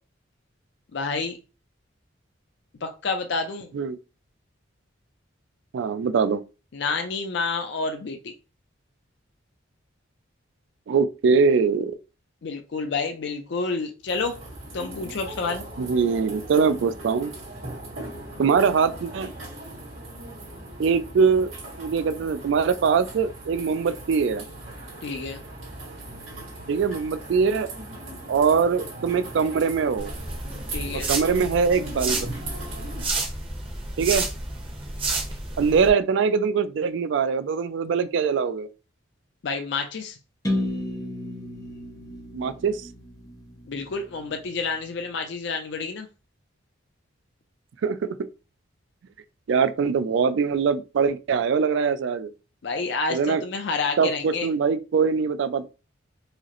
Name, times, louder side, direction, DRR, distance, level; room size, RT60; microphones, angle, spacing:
voice 1, 0.9-1.4 2.8-3.7 6.7-8.3 12.4-14.4 14.7-15.6 25.0-25.4 30.7-31.1 39.4-40.2 43.6-46.1 52.6-54.5, left 4 dB, 60° left, 0.4 m, -29 dB
voice 2, 5.7-6.4 10.9-12.0 15.8-17.3 18.4-19.3 20.8-24.4 26.7-27.7 28.3-30.1 31.1-32.3 34.0-34.3 35.6-38.7 42.3-42.8 47.8-48.2 49.5-52.3 53.1-53.4 54.0-55.7, right 5 dB, 65° right, 0.3 m, -22 dB
sound 1, 14.1-33.1, right 1 dB, 80° right, 2.1 m, -39 dB
sound 2, 30.0-35.9, right 3 dB, 25° right, 0.7 m, -30 dB
sound 3, 40.4-44.3, left 1 dB, 15° left, 0.6 m, -32 dB
4.8 x 2.0 x 2.9 m
head